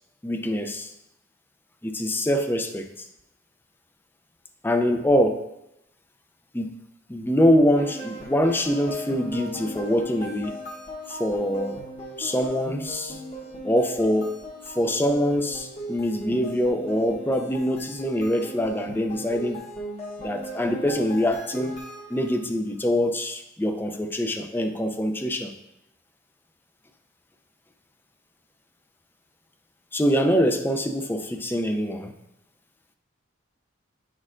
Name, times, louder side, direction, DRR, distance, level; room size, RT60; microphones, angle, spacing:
voice 1, 0.2-0.9 1.8-3.1 4.6-5.5 6.5-6.8 7.1-10.6 11.1-11.8 12.2-13.2 13.6-14.4 14.7-19.6 20.2-21.8 22.1-25.5 29.9-32.1, equal, 10° left, 6 dB, 0.4 m, -24 dB
sound 1, 7.8-22.5, equal, 35° left, 1.2 m, -38 dB
9.8 x 6.3 x 2.5 m, 0.87 s
head